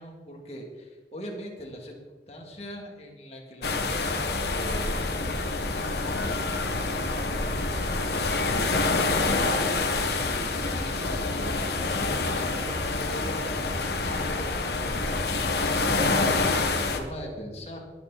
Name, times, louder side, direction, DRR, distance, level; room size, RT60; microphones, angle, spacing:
voice 1, 0.0-2.0 2.3-7.5 8.3-16.3 16.6-17.8, equal, 35° left, 0 dB, 2.5 m, -41 dB
sound 1, 3.6-17.0, left 3 dB, 65° left, 1.5 m, -27 dB
21.0 x 8.9 x 4.2 m, 1.4 s
head